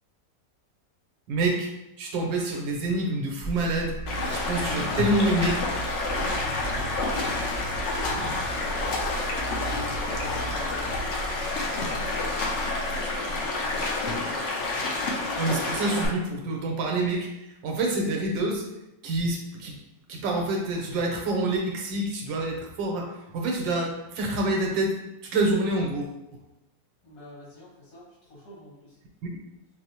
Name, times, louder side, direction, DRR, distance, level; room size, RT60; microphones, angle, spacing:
voice 1, 1.3-1.7 2.0-4.0 4.3-5.6 15.1-18.6 19.0-19.8 20.1-24.9 25.2-26.4 29.2-29.3, right 2 dB, 85° right, 0 dB, 1.5 m, -27 dB
sound 1, 3.4-14.3, right 1 dB, 65° right, 0.5 m, -36 dB
Stream, 4.1-16.1, left 3 dB, 60° left, 0.8 m, -29 dB
voice 2, 9.8-14.1 27.0-29.0, left 1 dB, 80° left, -6 dB, 2.3 m, -45 dB
6.1 x 2.0 x 2.9 m, 0.90 s
omnidirectional pair, 1.9 m